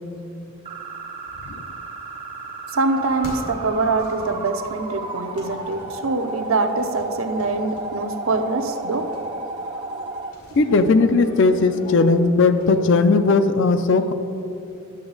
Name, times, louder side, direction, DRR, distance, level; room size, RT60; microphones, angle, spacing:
sound 1, 0.6-10.3, right 3 dB, 25° right, 0.4 m, -34 dB
voice 1, 2.7-9.1, right 3 dB, 65° right, 7 dB, 0.6 m, -24 dB
sound 2, 2.8-12.8, left 1 dB, 85° left, 1.9 m, -42 dB
voice 2, 10.6-14.1, left 3 dB, 55° left, 10 dB, 0.4 m, -17 dB
11.0 x 6.9 x 3.9 m, 2.8 s
head